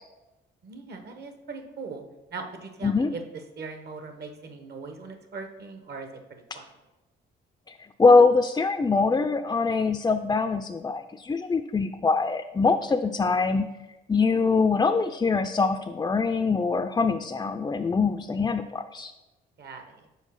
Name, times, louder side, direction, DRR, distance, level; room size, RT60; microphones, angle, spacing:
voice 1, 0.6-2.0 2.3-3.2 3.6-6.7 19.6-20.1, right 4 dB, 55° right, 6 dB, 1.2 m, -40 dB
voice 2, 7.7-13.7 14.1-19.1, left 4 dB, 20° left, 7 dB, 0.4 m, -23 dB
5.5 x 4.8 x 6.3 m, 1.1 s
cardioid pair, 90°, 20 cm